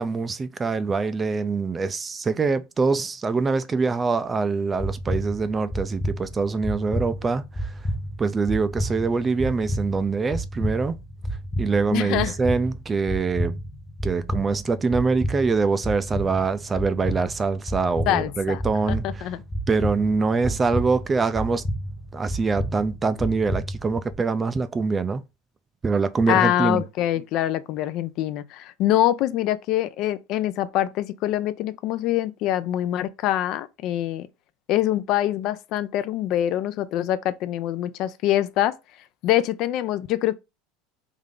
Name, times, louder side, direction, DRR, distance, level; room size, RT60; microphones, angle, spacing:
voice 1, 0.0-7.7 8.2-11.0 11.6-13.6 14.0-19.3 19.7-21.6 22.1-25.2 25.8-26.8, right 4 dB, 20° right, 0.4 m, -24 dB
sound 1, 4.8-24.1, equal, 15° left, 0.8 m, -31 dB
voice 2, 11.9-12.4 18.1-18.6 19.0-19.4 26.3-34.3 34.7-38.8 39.2-40.4, left 13 dB, 55° left, 0.4 m, -24 dB
3.6 x 3.2 x 3.7 m
supercardioid pair, 125°, 0 cm